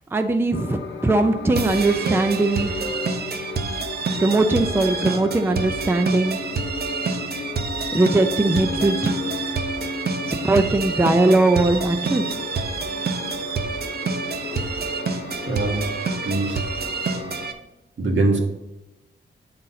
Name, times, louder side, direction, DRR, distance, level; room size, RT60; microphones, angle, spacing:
voice 1, 0.1-2.7 4.2-6.4 7.9-9.1 10.3-12.4, right 2 dB, 10° right, 7 dB, 0.4 m, -20 dB
sound 1, 0.5-17.5, left 4 dB, 70° left, 0.9 m, -34 dB
sound 2, 1.5-17.5, right 4 dB, 55° right, 0.7 m, -28 dB
voice 2, 15.4-15.9 16.2-16.6 18.0-18.4, right 2 dB, 80° right, 1 dB, 1.7 m, -22 dB
8.6 x 4.0 x 5.6 m, 0.94 s
wide cardioid pair, 165°, 20 cm